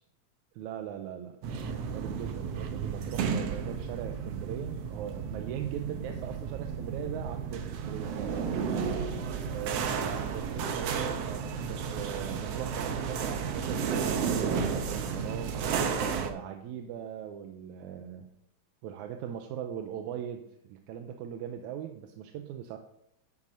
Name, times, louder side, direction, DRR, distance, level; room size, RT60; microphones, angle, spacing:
voice 1, 0.5-1.4 1.7-8.5 9.5-15.6 16.1-18.3 18.8-22.8, right 9 dB, 85° right, 5 dB, 2.0 m, -40 dB
sound 1, 1.4-16.3, right 6 dB, 70° right, 1.7 m, -32 dB
11.0 x 9.7 x 2.7 m, 0.75 s
omnidirectional pair, 3.4 m